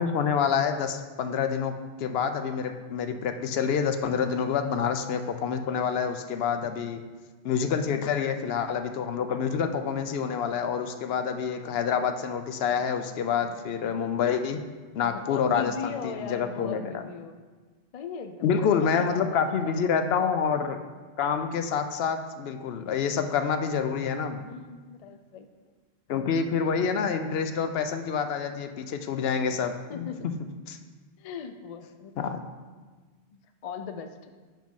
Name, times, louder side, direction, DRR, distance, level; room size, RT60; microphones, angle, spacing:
voice 1, 0.0-7.0 7.4-14.6 15.0-17.0 18.4-20.8 21.2-24.4 26.1-30.1 30.7-30.8 32.2-32.4, left 6 dB, 75° left, 8 dB, 0.8 m, -27 dB
voice 2, 15.0-17.4 17.9-20.0 24.4-25.7 29.9-30.3 31.2-32.2 33.3-34.3, left 6 dB, 55° left, 8 dB, 0.4 m, -39 dB
5.6 x 5.0 x 5.3 m, 1.4 s
omnidirectional pair, 1.1 m